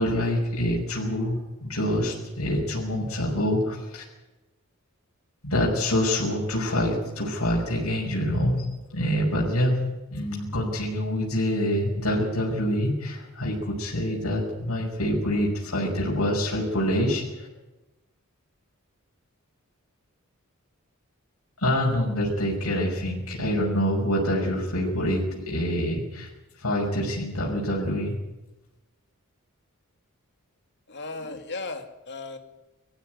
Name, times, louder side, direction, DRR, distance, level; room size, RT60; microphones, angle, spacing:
voice 1, 0.0-4.0 5.4-9.8 10.1-17.5 21.6-26.3 26.6-28.2, equal, 85° left, -3 dB, 5.9 m, -26 dB
voice 2, 30.9-32.4, left 3 dB, 55° left, 6 dB, 2.5 m, -36 dB
21.0 x 15.0 x 9.4 m, 1.0 s
head